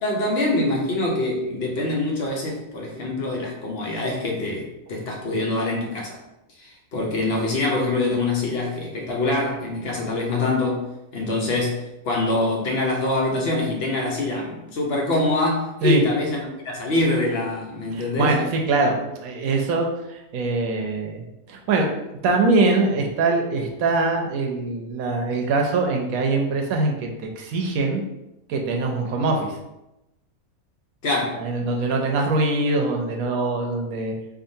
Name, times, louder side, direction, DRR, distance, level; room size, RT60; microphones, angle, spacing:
voice 1, 0.0-6.2 6.6-10.8 11.1-18.4 31.0-31.4, left 2 dB, 50° left, -1 dB, 0.9 m, -24 dB
voice 2, 17.9-21.9 22.2-27.1 27.4-28.0 28.5-29.6 31.3-34.1, right 3 dB, 80° right, 2 dB, 1.1 m, -23 dB
4.8 x 2.5 x 2.7 m, 0.92 s
omnidirectional pair, 1.5 m